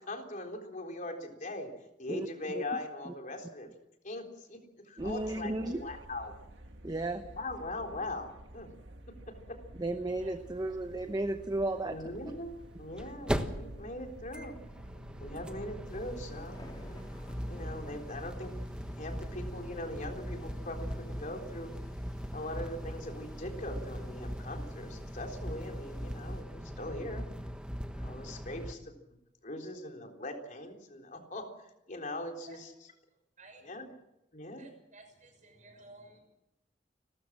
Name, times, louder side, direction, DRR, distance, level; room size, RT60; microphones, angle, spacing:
voice 1, 0.1-1.7 2.0-3.7 4.0-4.6 4.8-6.3 7.4-8.7 9.5-9.6 11.8-12.5 12.8-14.5 15.2-17.0 17.5-18.5 18.9-21.7 22.3-27.3 28.0-28.9 29.4-32.7 33.6-33.9 34.3-34.6, left 1 dB, 45° left, 3 dB, 3.8 m, -41 dB
voice 2, 2.1-2.6 5.0-5.8 6.8-7.2 9.8-12.0, right 2 dB, 20° right, 8 dB, 0.9 m, -34 dB
sound 1, 5.0-20.2, right 1 dB, 75° right, 1.9 m, -51 dB
sound 2, 10.2-10.3 10.4-10.5 12.4-28.7, equal, 5° right, 1.3 m, -40 dB
sound 3, 15.9-26.4, left 1 dB, 25° left, 3.5 m, -57 dB
voice 3, 33.4-33.7 34.6-36.2, right 2 dB, 45° right, 5 dB, 6.3 m, -55 dB
30.0 x 14.0 x 7.5 m, 0.88 s
head